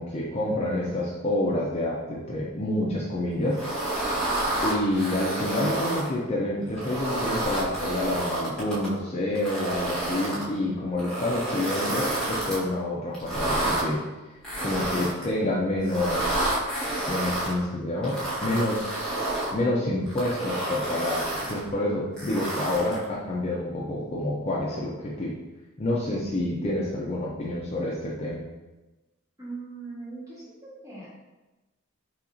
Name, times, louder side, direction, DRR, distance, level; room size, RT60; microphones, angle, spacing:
voice 1, 0.0-3.6 4.6-14.1 14.6-16.5 17.1-19.2 19.5-25.4 25.8-28.4, left 1 dB, 30° left, -4 dB, 0.5 m, -28 dB
sound 1, 3.5-6.1 6.7-8.9 9.3-10.4 11.0-12.6 13.1-13.8 14.4-15.3 15.8-17.5 18.0-19.5 20.1-21.6 22.2-23.0, right 1 dB, 5° left, 1.1 m, -29 dB
voice 2, 29.4-31.1, right 3 dB, 15° right, -8 dB, 1.3 m, -40 dB
5.7 x 2.4 x 2.6 m, 1.1 s
head